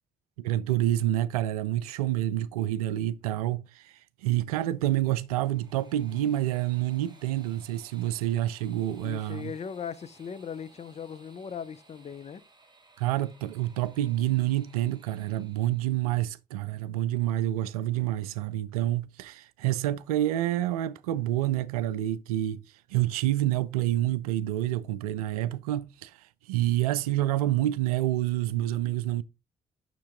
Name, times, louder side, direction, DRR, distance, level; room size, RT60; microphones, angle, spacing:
voice 1, 0.4-9.5 13.0-22.6 22.9-26.2 26.5-29.2, right 14 dB, 80° right, 0.4 m, -28 dB
sound 1, 5.1-16.2, right 3 dB, 25° right, 2.0 m, -59 dB
voice 2, 9.0-12.4, left 7 dB, 35° left, 0.7 m, -38 dB
7.1 x 6.0 x 3.7 m
figure-of-eight pair, 40°, 19 cm